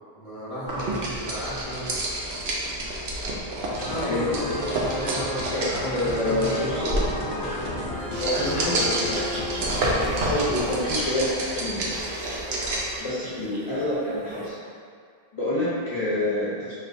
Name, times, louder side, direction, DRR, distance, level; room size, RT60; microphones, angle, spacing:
voice 1, 0.2-1.9 3.7-7.9, equal, 30° right, -13 dB, 1.6 m, -34 dB
sound 1, 0.7-13.0, right 1 dB, 85° right, 0.9 m, -29 dB
sound 2, 3.7-10.1, left 1 dB, 70° left, 1.0 m, -33 dB
voice 2, 5.9-6.8 8.2-11.9 13.0-14.6 15.3-16.7, left 1 dB, 35° left, -11 dB, 0.8 m, -28 dB
Laughter, 7.9-14.5, right 2 dB, 55° right, 0.6 m, -38 dB
5.0 x 2.8 x 2.5 m, 2.2 s
omnidirectional pair, 1.0 m